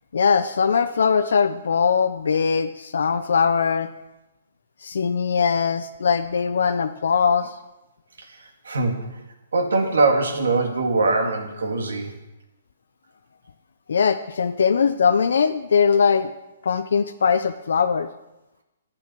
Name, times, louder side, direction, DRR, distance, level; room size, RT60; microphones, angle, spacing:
voice 1, 0.1-3.9 4.8-7.5 13.9-16.3 16.6-18.1, left 6 dB, 75° left, 9 dB, 0.6 m, -21 dB
voice 2, 8.2-9.2 9.5-12.1, right 3 dB, 85° right, 4 dB, 2.1 m, -22 dB
9.6 x 8.7 x 6.2 m, 0.97 s
hypercardioid pair, 155°, 0 cm